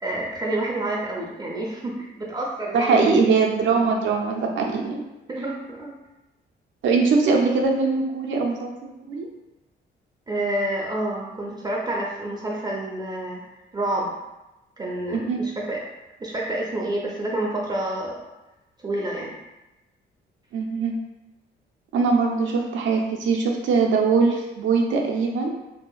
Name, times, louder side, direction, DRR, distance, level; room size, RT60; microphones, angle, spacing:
voice 1, 0.0-3.1 5.3-5.9 10.3-13.4 13.7-14.1 14.8-15.8 16.2-18.2 18.8-19.4, right 1 dB, 20° right, -3 dB, 0.4 m, -28 dB
voice 2, 2.7-5.0 6.8-9.3 15.1-15.4 20.5-21.0 21.9-25.6, right 4 dB, 75° right, 1 dB, 0.5 m, -21 dB
2.7 x 2.4 x 2.2 m, 0.99 s
cardioid pair, 90°, 20 cm